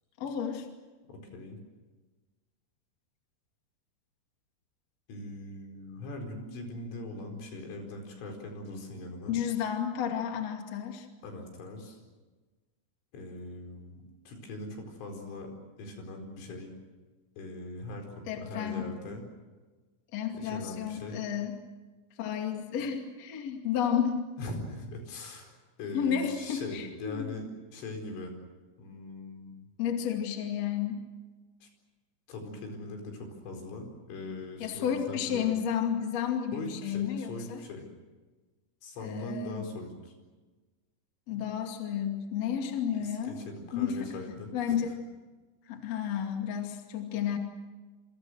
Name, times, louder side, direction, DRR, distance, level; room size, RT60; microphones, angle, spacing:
voice 1, 0.2-0.7 9.3-11.1 18.3-18.9 20.1-21.5 22.2-24.3 25.9-27.3 29.8-31.0 34.6-37.6 39.0-39.7 41.3-43.4 43.7-44.1 44.5-44.9 45.7-47.4, left 8 dB, 40° left, 3 dB, 2.9 m, -32 dB
voice 2, 1.1-1.6 5.1-9.4 11.2-12.0 13.1-15.5 15.8-16.7 17.4-19.2 20.3-21.2 24.4-28.3 28.8-29.6 31.6-31.7 32.3-35.6 36.5-37.9 38.8-40.1 42.9-44.8, left 2 dB, 80° left, 4 dB, 7.1 m, -41 dB
27.5 x 26.5 x 6.5 m, 1.3 s
omnidirectional pair, 5.6 m